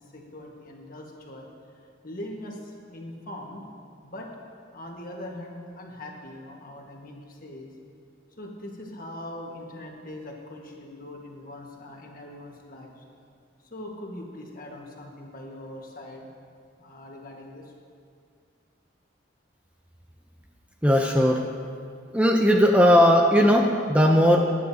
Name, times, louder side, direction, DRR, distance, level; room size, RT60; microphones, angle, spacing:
voice 1, 0.0-1.5 2.0-3.6 4.0-4.3 4.7-7.7 8.4-13.0 13.6-16.3 16.8-17.7, left 1 dB, 45° left, 0 dB, 1.5 m, -41 dB
voice 2, 20.8-21.5 22.1-24.6, equal, 5° right, 1 dB, 0.5 m, -18 dB
21.0 x 9.4 x 2.8 m, 2.3 s
head